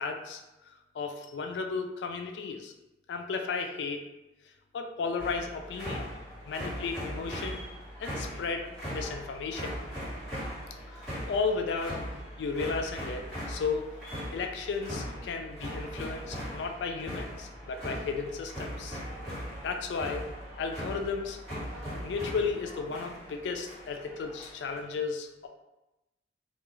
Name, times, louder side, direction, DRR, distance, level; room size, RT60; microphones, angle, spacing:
voice 1, 0.0-2.7 3.1-4.0 4.7-6.1 6.5-7.6 8.0-9.7 10.9-12.0 12.4-13.9 14.3-19.0 19.6-20.2 20.6-21.4 22.0-25.5, left 4 dB, 70° left, 4 dB, 0.3 m, -34 dB
sound 1, 5.2-24.8, equal, ahead, 1.3 m, -39 dB
2.3 x 2.2 x 3.0 m, 0.97 s
head